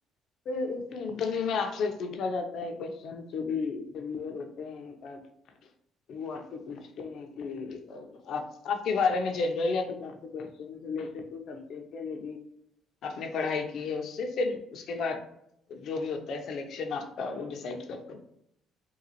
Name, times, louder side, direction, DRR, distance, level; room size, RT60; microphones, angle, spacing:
voice 1, 0.5-5.2 6.1-12.4 13.0-15.2 15.7-18.2, left 4 dB, 65° left, 4 dB, 0.7 m, -33 dB
3.8 x 2.4 x 3.0 m, 0.75 s
cardioid pair, 95°, 0 cm